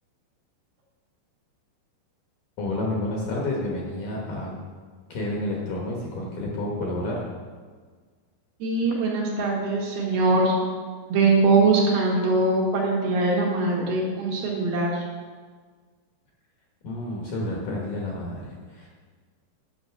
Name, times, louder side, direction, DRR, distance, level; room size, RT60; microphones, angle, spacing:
voice 1, 2.6-4.5 5.1-7.3 16.8-18.9, left 1 dB, 60° left, -3 dB, 2.3 m, -30 dB
voice 2, 8.6-10.5 11.1-15.0, right 3 dB, 65° right, -2 dB, 3.1 m, -22 dB
9.2 x 7.1 x 5.8 m, 1.5 s
omnidirectional pair, 5.1 m